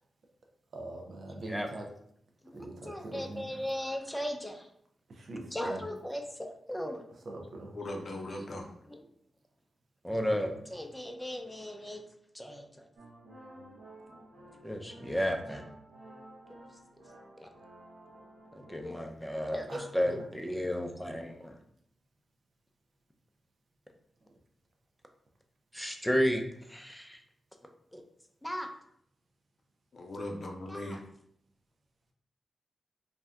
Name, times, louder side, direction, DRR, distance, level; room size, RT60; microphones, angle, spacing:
voice 1, 0.7-1.8 2.5-3.5 5.1-5.8 7.3-7.7 19.7-19.8, right 2 dB, 70° right, 2 dB, 0.5 m, -42 dB
voice 2, 2.4-4.7 5.5-7.0 8.9-9.0 10.0-12.0 12.3-12.9 14.6-15.6 17.4-17.5 18.5-21.6 25.7-26.4 26.7-27.2 27.9-28.0 28.4-28.7 30.7-31.0, equal, 5° left, 4 dB, 0.5 m, -34 dB
voice 3, 7.7-8.7 29.9-31.0, left 1 dB, 60° left, 2 dB, 0.6 m, -39 dB
sound 1, 13.0-18.8, right 1 dB, 90° right, 0.9 m, -52 dB
2.7 x 2.2 x 3.3 m, 0.69 s
supercardioid pair, 45°, 0 cm